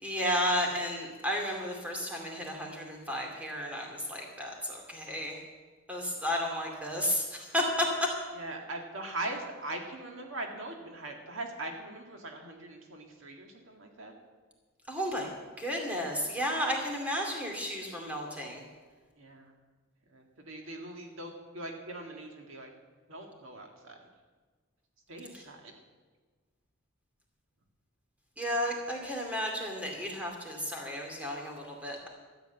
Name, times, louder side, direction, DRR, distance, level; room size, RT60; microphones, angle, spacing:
voice 1, 0.0-5.4 5.9-7.9 14.9-15.3 15.6-18.6 28.4-32.1, equal, 5° right, 0 dB, 2.5 m, -33 dB
voice 2, 8.3-14.1 19.2-19.5 20.1-22.7 23.1-24.0 25.1-25.7, right 2 dB, 70° right, 2 dB, 1.9 m, -41 dB
13.5 x 8.0 x 9.1 m, 1.4 s
head